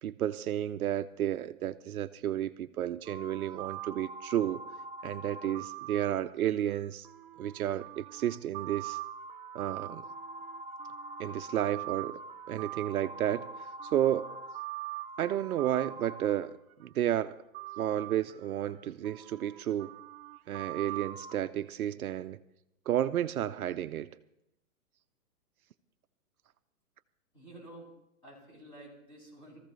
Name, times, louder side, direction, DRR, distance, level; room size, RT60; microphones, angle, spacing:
voice 1, 0.0-4.6 5.0-7.1 7.4-9.0 9.5-10.0 11.2-12.2 12.5-13.5 13.8-14.3 15.2-17.4 17.8-19.9 20.5-22.4 22.9-24.1, right 11 dB, 70° right, 0.7 m, -32 dB
sound 1, 3.0-16.9 17.5-21.4, right 8 dB, 40° right, 0.9 m, -42 dB
voice 2, 27.3-27.9 28.2-29.6, right 1 dB, 10° left, 6.7 m, -50 dB
22.0 x 14.5 x 3.2 m
hypercardioid pair, 155°, 45 cm